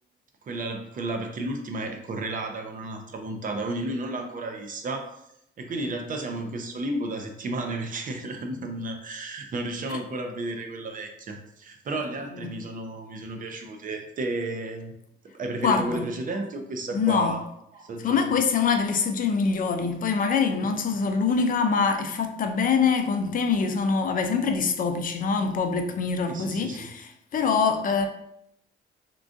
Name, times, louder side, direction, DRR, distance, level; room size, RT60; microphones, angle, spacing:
voice 1, 0.4-5.2 5.6-14.9 15.3-17.4 17.7-18.3 20.6-20.7 26.3-26.9, right 2 dB, 45° right, 0.6 m, -33 dB
voice 2, 15.6-16.1 16.9-17.4 18.0-28.1, left 5 dB, 45° left, 0.4 m, -24 dB
3.7 x 2.3 x 2.5 m
cardioid pair, 90°, 20 cm